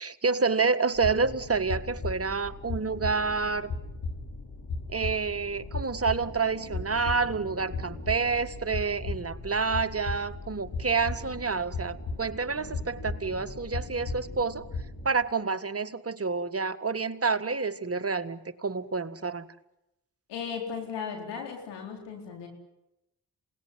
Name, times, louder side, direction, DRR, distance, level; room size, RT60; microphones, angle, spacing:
voice 1, 0.0-3.7 4.9-14.7 15.0-19.4, right 4 dB, 35° right, 9 dB, 1.7 m, -28 dB
sound 1, 0.9-15.1, left 3 dB, 65° left, 7.8 m, -37 dB
voice 2, 20.3-22.5, left 6 dB, 90° left, 2 dB, 4.4 m, -36 dB
27.0 x 19.0 x 9.5 m, 0.91 s
supercardioid pair, 40°, 41 cm